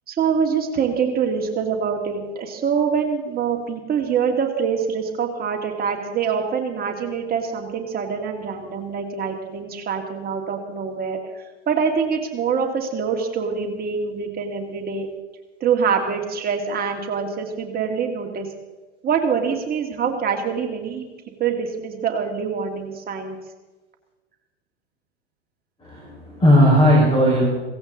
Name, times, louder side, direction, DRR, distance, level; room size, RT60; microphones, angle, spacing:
voice 1, 0.1-11.2 11.7-15.1 15.6-18.5 19.0-21.1 21.4-23.4, right 6 dB, 25° right, 2 dB, 2.5 m, -24 dB
voice 2, 25.8-27.5, equal, 15° left, -3 dB, 5.1 m, -16 dB
17.0 x 16.5 x 3.9 m, 1.2 s
hypercardioid pair, 95°, 33 cm